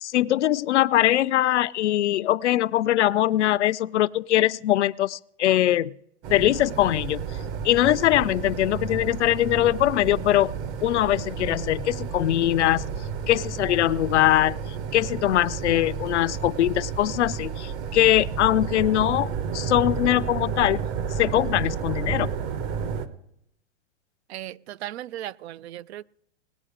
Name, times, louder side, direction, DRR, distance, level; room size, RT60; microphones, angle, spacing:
voice 1, 0.0-5.9 6.3-7.2 7.6-10.5 10.8-12.9 13.3-14.6 14.9-20.8 21.2-22.3, left 13 dB, 75° left, 0.5 m, -22 dB
sound 1, 6.2-23.1, right 6 dB, 35° right, 1.1 m, -31 dB
voice 2, 24.3-26.0, right 13 dB, 65° right, 0.5 m, -36 dB
19.0 x 8.7 x 5.0 m
hypercardioid pair, 130°, 36 cm